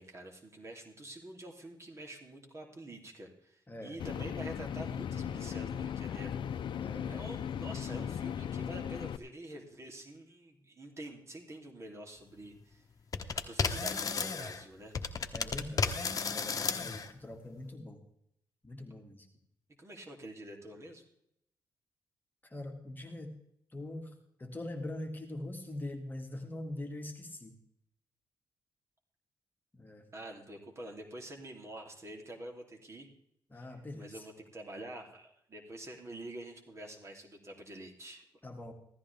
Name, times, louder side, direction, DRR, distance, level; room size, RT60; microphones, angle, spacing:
voice 1, 0.0-6.6 7.0-12.8 13.5-14.9 18.9-19.0 19.8-21.0 30.1-33.1 33.5-33.7 34.0-38.2, right 1 dB, 35° right, 1 dB, 3.0 m, -47 dB
voice 2, 3.7-4.0 6.8-7.1 15.3-18.0 18.6-19.3 22.4-23.4 23.7-27.6 29.7-30.1 33.5-34.3 38.4-38.7, left 1 dB, 20° left, 3 dB, 2.1 m, -43 dB
sound 1, 4.0-9.2, left 8 dB, 65° left, 0.6 m, -37 dB
sound 2, 13.1-14.6 14.9-17.1, left 5 dB, 45° left, 1.2 m, -33 dB
16.0 x 13.5 x 3.5 m, 0.73 s
cardioid pair, 105°, 9 cm